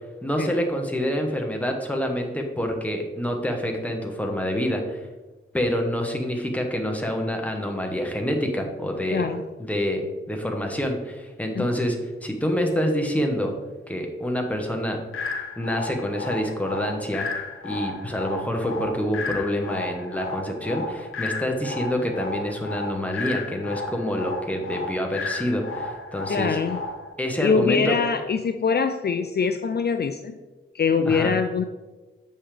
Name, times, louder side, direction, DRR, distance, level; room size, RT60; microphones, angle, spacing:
voice 1, 0.2-5.0 5.5-9.2 9.6-13.5 13.9-15.0 15.6-17.3 17.6-26.6 27.2-28.0 31.0-31.3, equal, 5° left, 2 dB, 1.1 m, -27 dB
voice 2, 9.1-9.4 11.6-11.7 26.3-26.8 27.4-30.4 30.7-31.6, left 5 dB, 50° left, 7 dB, 0.4 m, -23 dB
sound 1, 15.1-27.1, left 3 dB, 80° left, 0.7 m, -33 dB
7.2 x 5.5 x 3.3 m, 1.2 s
wide cardioid pair, 80°, 21 cm